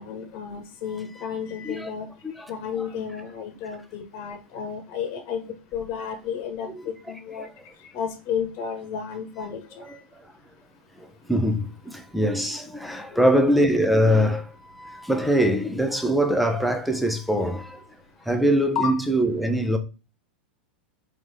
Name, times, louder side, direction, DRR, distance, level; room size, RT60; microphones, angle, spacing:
voice 1, 0.0-2.1 2.5-5.4 5.7-7.5 7.9-10.0 13.1-13.2 18.7-18.9, left 7 dB, 45° left, 1.2 m, -32 dB
voice 2, 9.8-10.3 11.0-17.8 18.2-19.8, equal, ahead, 0.7 m, -23 dB
4.0 x 3.2 x 3.3 m
hypercardioid pair, 110°, 6 cm